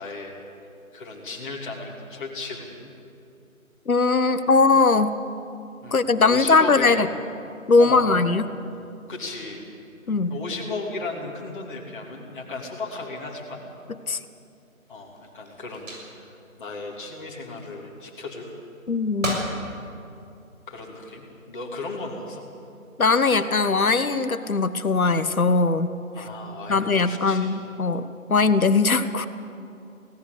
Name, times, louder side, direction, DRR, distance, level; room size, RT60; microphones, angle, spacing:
voice 1, 0.0-2.9 5.8-7.2 7.8-8.5 9.1-9.7 10.3-13.6 14.9-18.5 20.7-22.4 26.1-27.5, left 3 dB, 35° left, -3 dB, 3.1 m, -36 dB
voice 2, 3.9-5.1 5.9-7.1 7.7-8.5 10.1-10.4 14.1-14.2 18.9-19.5 23.0-25.9 26.7-29.3, left 4 dB, 75° left, 12 dB, 1.3 m, -20 dB
sound 1, 14.8-17.9 18.3-18.9 19.2-19.6 20.1-20.9 21.6-22.0, right 1 dB, 65° right, 6.8 m, -36 dB
18.5 x 17.0 x 8.2 m, 2.6 s
figure-of-eight pair, 155°, 42 cm